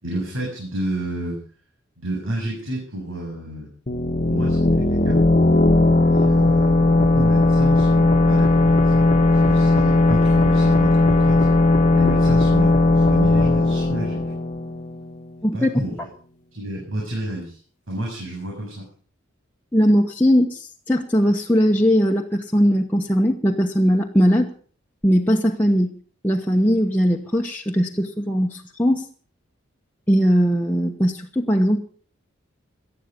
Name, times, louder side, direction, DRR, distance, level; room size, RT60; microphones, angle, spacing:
voice 1, 0.0-1.4 2.0-3.7 4.3-5.3 6.1-9.0 9.5-11.5 11.9-14.4 15.5-15.9 16.5-17.6 17.9-18.9, right 1 dB, 85° right, -2 dB, 7.5 m, -30 dB
sound 1, 3.9-15.4, left 2 dB, 35° left, 1.2 m, -17 dB
voice 2, 19.7-24.5 25.0-25.9 26.2-29.1 30.1-31.8, equal, 10° left, -1 dB, 1.2 m, -19 dB
18.5 x 13.0 x 5.4 m, 0.43 s
head